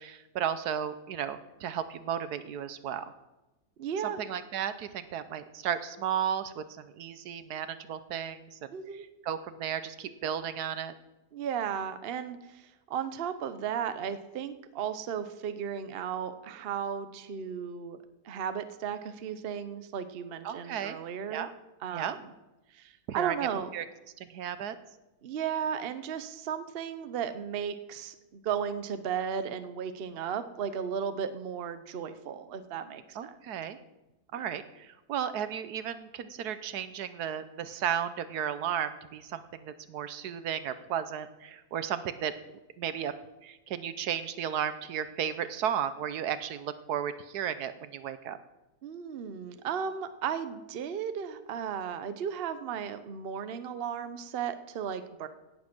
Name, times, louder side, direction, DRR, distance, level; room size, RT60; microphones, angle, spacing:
voice 1, 0.0-3.1 4.0-10.9 20.4-21.0 21.3-21.5 21.9-22.2 23.1-23.8 24.2-24.8 33.2-33.8 34.3-42.3 42.8-43.1 43.4-48.4, right 9 dB, 75° right, 12 dB, 1.3 m, -34 dB
voice 2, 3.8-4.2 8.7-9.0 11.3-18.0 18.2-21.5 21.8-22.2 22.7-23.7 25.2-33.4 34.3-34.5 48.8-55.3, right 8 dB, 50° right, 11 dB, 0.8 m, -35 dB
17.0 x 7.5 x 6.1 m, 1.0 s
omnidirectional pair, 1.7 m